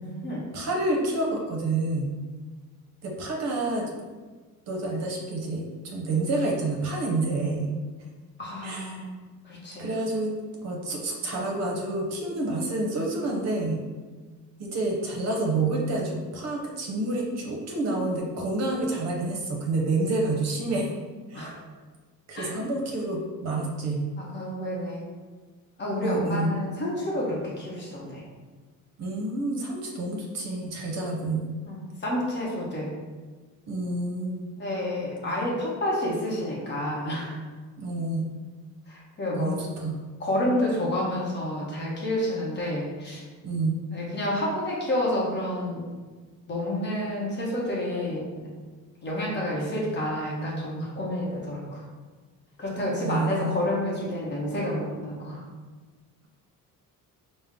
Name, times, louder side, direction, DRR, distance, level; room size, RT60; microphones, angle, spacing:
voice 1, 0.0-0.4 8.4-9.1 9.4-9.9 21.3-21.6 22.3-22.5 24.2-25.0 25.8-28.2 31.6-32.9 34.6-37.4 38.9-39.6 40.2-43.2 43.9-45.9 46.5-48.5 49.0-51.9 52.6-55.4, left 1 dB, 30° left, -4 dB, 0.9 m, -29 dB
voice 2, 0.5-2.1 3.0-3.9 4.7-7.7 8.6-9.0 9.8-10.3 10.6-13.8 14.6-20.9 21.3-21.5 22.3-24.0 26.0-26.5 29.0-31.6 33.7-34.5 37.8-38.3 39.4-40.0 43.4-43.8 53.0-53.7, right 2 dB, 50° right, 0 dB, 0.7 m, -28 dB
5.2 x 2.1 x 3.5 m, 1.4 s
cardioid pair, 170°, 34 cm